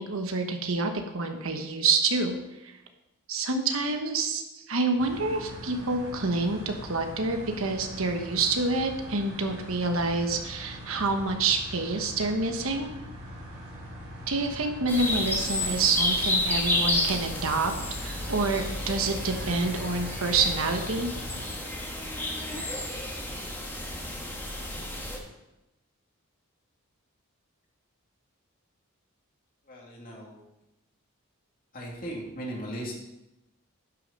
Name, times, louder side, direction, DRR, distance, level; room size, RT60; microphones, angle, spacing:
voice 1, 0.0-2.4 2.6-2.7 3.3-12.9 14.3-17.7 18.0-21.1, right 3 dB, 65° right, 5 dB, 1.2 m, -27 dB
sound 1, 5.0-21.5, equal, 90° right, 4.1 m, -42 dB
sound 2, 14.9-25.2, left 1 dB, 10° left, 1.5 m, -31 dB
voice 2, 29.7-30.4 31.7-32.9, right 1 dB, 40° left, -2 dB, 2.6 m, -37 dB
11.0 x 6.6 x 5.3 m, 0.94 s
head